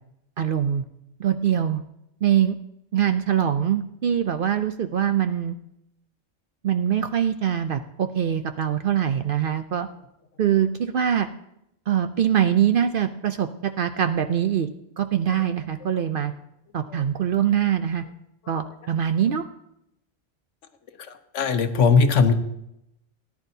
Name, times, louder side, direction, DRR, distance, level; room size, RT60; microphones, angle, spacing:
voice 1, 0.4-0.8 1.2-1.8 2.2-2.6 2.9-5.5 6.6-9.9 10.4-11.3 11.9-14.7 15.0-16.3 16.7-18.0 18.5-19.4, right 9 dB, 60° right, 9 dB, 0.6 m, -23 dB
voice 2, 21.3-22.3, left 5 dB, 75° left, 8 dB, 1.2 m, -19 dB
18.0 x 10.5 x 2.7 m, 0.81 s
omnidirectional pair, 1.3 m